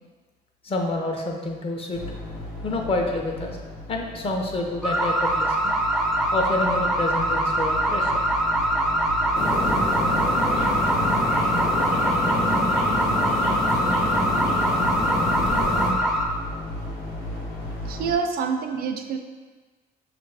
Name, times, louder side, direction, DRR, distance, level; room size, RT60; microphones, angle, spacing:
voice 1, 0.6-2.0 2.6-3.6 3.9-5.7 6.3-8.2, left 2 dB, 35° left, 1 dB, 0.7 m, -28 dB
sound 1, 1.9-18.1, left 1 dB, 90° left, 1.2 m, -36 dB
sound 2, 4.8-16.3, right 1 dB, ahead, 0.4 m, -23 dB
sound 3, 9.3-15.9, left 1 dB, 70° left, 0.8 m, -27 dB
voice 2, 17.9-19.2, right 5 dB, 60° right, 6 dB, 0.4 m, -26 dB
5.4 x 2.5 x 3.3 m, 1.4 s
cardioid pair, 110°, 17 cm